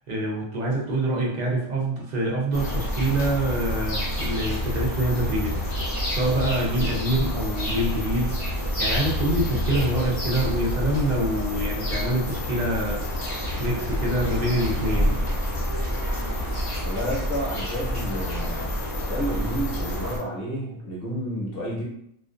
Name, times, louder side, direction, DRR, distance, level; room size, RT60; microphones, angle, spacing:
voice 1, 0.1-15.2, right 1 dB, 50° right, -3 dB, 0.5 m, -26 dB
sound 1, 2.5-20.2, equal, 30° left, 0.7 m, -28 dB
voice 2, 16.8-18.7 19.0-21.8, equal, 50° left, -4 dB, 1.0 m, -30 dB
2.4 x 2.4 x 2.4 m, 0.73 s
omnidirectional pair, 1.4 m